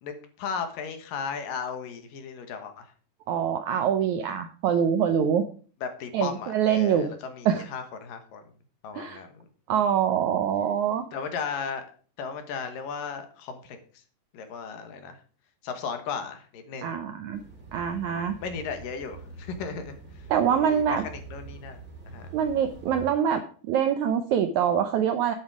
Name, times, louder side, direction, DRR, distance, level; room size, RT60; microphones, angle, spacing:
voice 1, 0.0-2.9 5.8-8.4 8.8-9.5 11.1-11.9 12.2-13.8 14.3-15.2 15.6-17.0 18.4-20.3 20.5-21.8 22.1-22.3, left 6 dB, 70° left, 7 dB, 2.9 m, -36 dB
voice 2, 3.3-5.5 6.1-7.1 7.5-7.6 9.0-9.2 9.7-11.1 16.8-17.4 17.7-18.4 20.3-21.0 22.3-25.3, right 8 dB, 75° right, 8 dB, 1.7 m, -24 dB
sound 1, 17.3-23.1, right 3 dB, 25° right, 3.5 m, -45 dB
11.0 x 9.4 x 4.9 m, 0.41 s
omnidirectional pair, 4.3 m